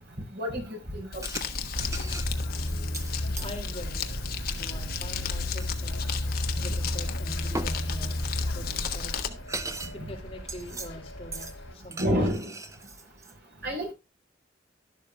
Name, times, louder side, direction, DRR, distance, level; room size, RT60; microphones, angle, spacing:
voice 1, 0.3-1.2 12.0-12.5 13.6-13.9, equal, 55° right, 3 dB, 4.8 m, -28 dB
Crumpling crinkling, 1.1-9.3, left 5 dB, 50° left, 1.3 m, -34 dB
sound 1, 1.2-1.5 1.8-3.6 5.6-5.8 7.5-7.7 8.9-9.0 9.2-10.0 10.2-10.9 11.3-11.5 11.9-13.3, right 3 dB, 15° right, 0.8 m, -38 dB
Bus, 1.7-11.7, left 1 dB, 70° left, 4.6 m, -34 dB
voice 2, 3.3-4.1 4.5-6.0 6.6-9.4 9.9-12.2, equal, 30° left, 2 dB, 2.4 m, -44 dB
12.0 x 12.0 x 2.3 m, 0.26 s
head